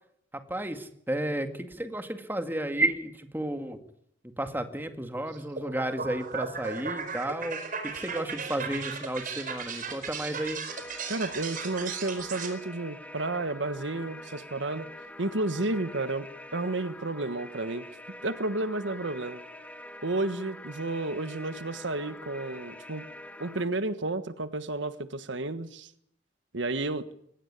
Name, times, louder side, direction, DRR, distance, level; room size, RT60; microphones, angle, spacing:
voice 1, 0.3-3.8 4.4-10.6, right 1 dB, 10° right, 7 dB, 2.1 m, -32 dB
sound 1, 5.6-12.5, right 5 dB, 50° right, 4.9 m, -36 dB
sound 2, 10.7-23.6, left 1 dB, 10° left, 2.3 m, -45 dB
voice 2, 11.1-14.9 15.2-16.3 16.5-17.8 18.2-19.4 20.0-23.0 23.4-25.9 26.5-27.1, right 2 dB, 80° right, 12 dB, 1.5 m, -31 dB
23.0 x 18.5 x 9.9 m, 0.71 s
head